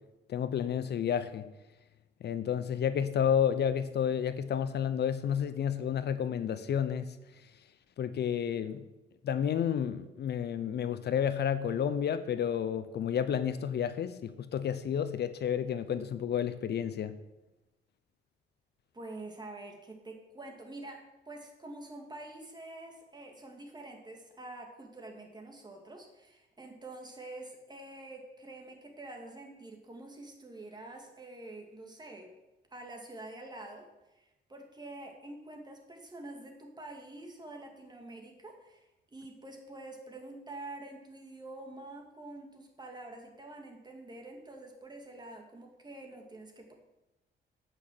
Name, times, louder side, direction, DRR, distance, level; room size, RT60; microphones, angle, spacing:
voice 1, 0.3-1.4 2.2-7.1 8.0-8.8 9.2-17.2, left 8 dB, 55° left, 12 dB, 0.7 m, -31 dB
voice 2, 18.9-32.3 32.7-46.7, right 2 dB, 20° right, 2 dB, 2.4 m, -47 dB
9.2 x 6.1 x 7.8 m, 1.0 s
cardioid pair, 90°, 20 cm